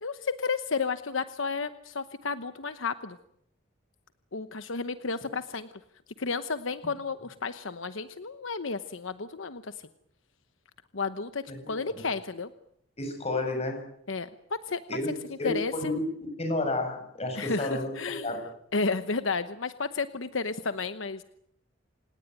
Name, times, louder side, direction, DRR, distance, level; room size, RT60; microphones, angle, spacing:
voice 1, 0.0-3.2 4.3-5.7 6.2-9.7 10.9-12.5 14.1-14.8 15.4-15.9 17.4-18.3 18.7-21.2, left 4 dB, 80° left, 11 dB, 1.0 m, -32 dB
voice 2, 11.5-12.0 13.0-13.8 14.9-15.1 15.4-18.4, left 2 dB, 35° left, 5 dB, 7.0 m, -31 dB
28.0 x 18.0 x 9.2 m, 0.72 s
head